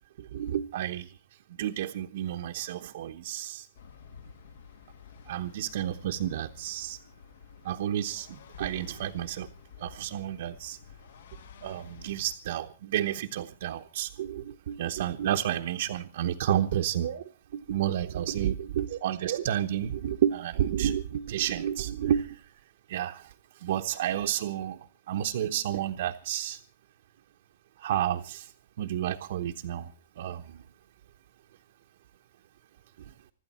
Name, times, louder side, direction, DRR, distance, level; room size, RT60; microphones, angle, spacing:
voice 1, 0.2-1.1 1.6-3.7 5.3-7.0 7.6-9.5 9.8-10.8 11.6-17.2 17.5-22.4 22.9-23.3 23.6-24.8 25.1-26.6 27.8-28.5 28.8-29.9 30.2-30.6, right 11 dB, 55° right, 1.0 m, -31 dB
sound 1, 3.7-12.4, left 6 dB, 75° left, 2.4 m, -50 dB
25.0 x 12.0 x 4.3 m
supercardioid pair, 175°, 0 cm